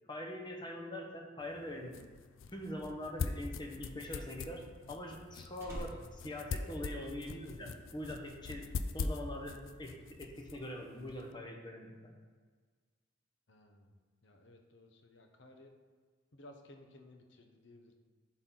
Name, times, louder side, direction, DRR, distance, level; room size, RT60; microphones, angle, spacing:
voice 1, 0.1-1.9 2.5-4.6 4.9-8.6 8.9-12.2, left 1 dB, 25° left, 1 dB, 1.0 m, -43 dB
sound 1, 1.4-11.3, left 4 dB, 90° left, 0.4 m, -43 dB
Slam, 3.5-7.4 7.7-8.1, equal, 15° right, 1.5 m, -50 dB
voice 2, 13.5-13.9 14.2-15.7 16.3-17.9, left 1 dB, 65° left, 4 dB, 0.9 m, -57 dB
11.5 x 4.2 x 3.9 m, 1.5 s
head